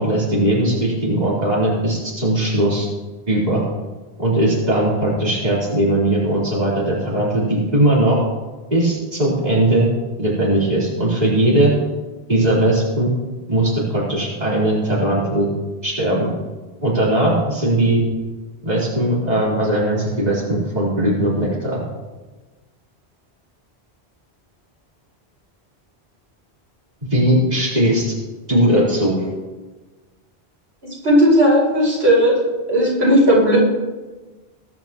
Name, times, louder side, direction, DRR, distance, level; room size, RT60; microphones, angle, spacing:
voice 1, 0.0-2.9 3.3-3.6 4.2-8.2 8.7-9.9 10.2-11.7 12.3-13.1 13.5-15.5 15.8-16.3 16.8-18.0 18.6-21.8 27.1-28.1 28.5-29.3, right 1 dB, 40° right, -7 dB, 4.1 m, -19 dB
voice 2, 31.0-32.4 32.7-33.6, equal, 85° right, -6 dB, 5.5 m, -14 dB
22.0 x 11.0 x 3.0 m, 1.2 s
omnidirectional pair, 1.1 m